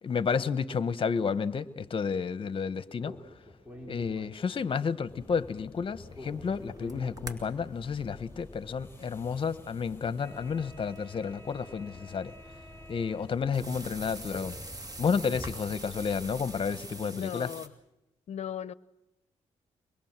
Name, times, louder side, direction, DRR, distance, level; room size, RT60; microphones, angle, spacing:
voice 1, 0.0-3.2 3.9-12.3 12.9-14.6 15.0-17.5, left 6 dB, 45° left, 1.1 m, -31 dB
Speech, 3.0-4.8 6.1-7.9, left 1 dB, 10° right, 4.1 m, -47 dB
sound 1, 5.1-17.0, left 2 dB, 15° left, 6.9 m, -49 dB
sound 2, 5.9-17.7, right 2 dB, 30° right, 2.5 m, -47 dB
voice 2, 17.1-17.7 18.3-18.7, left 9 dB, 65° left, 0.7 m, -37 dB
24.5 x 22.0 x 7.5 m
cardioid pair, 85°, 12 cm